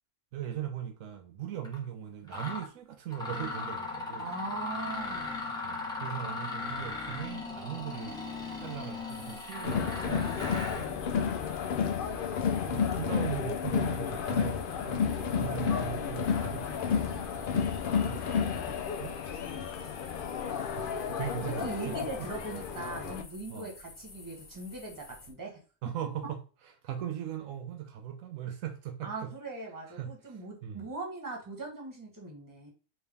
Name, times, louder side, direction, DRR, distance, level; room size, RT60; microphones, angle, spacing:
voice 1, 0.3-4.3 5.6-10.9 11.9-19.2 20.5-22.0 23.5-23.7 25.8-26.4 26.8-29.3 29.9-30.1 30.6-30.9, right 10 dB, 80° right, 1.0 m, -40 dB
Mechanisms, 1.6-1.8 2.3-2.7 3.1-10.9, left 3 dB, 5° left, 0.9 m, -38 dB
voice 2, 4.2-5.5 10.7-11.2 15.2-15.5 19.8-20.0 21.4-25.6 29.0-32.7, right 3 dB, 15° right, 1.2 m, -40 dB
sound 1, 9.1-25.3, left 3 dB, 75° left, 1.4 m, -51 dB
Crowd, 9.6-23.2, left 7 dB, 60° left, 0.5 m, -31 dB
3.4 x 3.0 x 3.4 m
omnidirectional pair, 1.4 m